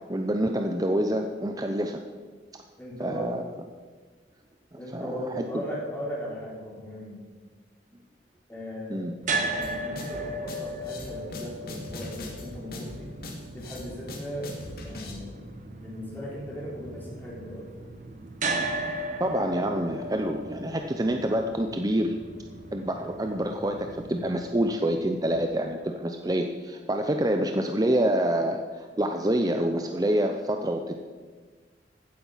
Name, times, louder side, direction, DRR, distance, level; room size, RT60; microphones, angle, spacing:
voice 1, 0.1-2.0 3.0-3.4 4.9-5.1 8.9-9.2 19.2-22.2 22.7-30.9, right 1 dB, 20° right, 5 dB, 0.6 m, -27 dB
voice 2, 2.8-3.3 4.8-7.2 8.5-9.1 9.5-13.1 13.5-14.5 14.8-15.4 15.8-17.7, equal, 10° left, -5 dB, 3.9 m, -38 dB
sound 1, 9.2-25.4, right 2 dB, 45° right, 1.3 m, -36 dB
sound 2, 9.6-15.1, left 2 dB, 55° left, 2.3 m, -40 dB
15.0 x 8.9 x 5.6 m, 1.4 s
head